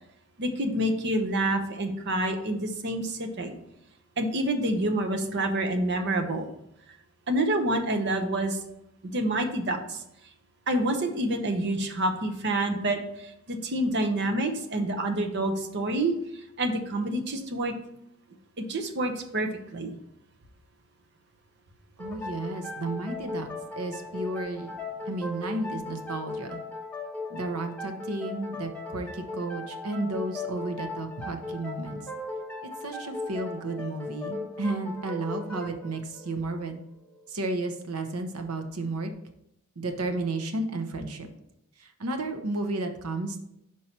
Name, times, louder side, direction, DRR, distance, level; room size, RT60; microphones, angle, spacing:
voice 1, 0.4-3.6 4.2-6.5 7.3-8.6 9.1-10.0 10.7-16.2 16.6-17.7 18.6-19.9, right 1 dB, 50° right, 5 dB, 0.8 m, -27 dB
sound 1, 22.0-37.3, left 3 dB, 5° left, 1.1 m, -38 dB
voice 2, 22.0-23.5 23.8-24.7 25.1-26.6 27.3-32.0 32.8-36.8 37.3-39.1 39.8-41.3 42.0-43.4, right 2 dB, 85° right, 5 dB, 0.9 m, -32 dB
5.7 x 4.6 x 4.4 m, 0.80 s
head